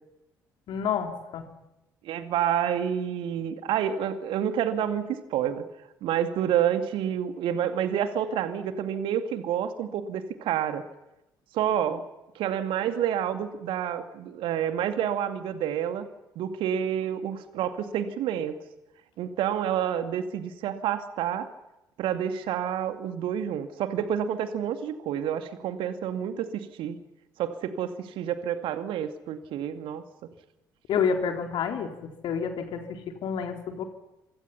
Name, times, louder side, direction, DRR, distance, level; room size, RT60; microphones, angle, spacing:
voice 1, 0.7-1.5 30.9-33.8, left 6 dB, 55° left, 4 dB, 4.1 m, -29 dB
voice 2, 2.0-5.6 6.0-10.8 11.5-12.0 12.3-16.1 16.4-18.6 19.2-21.5 22.0-27.0 27.4-30.0, right 9 dB, 60° right, 8 dB, 2.3 m, -29 dB
27.5 x 26.0 x 5.8 m, 0.94 s
figure-of-eight pair, 45°, 10 cm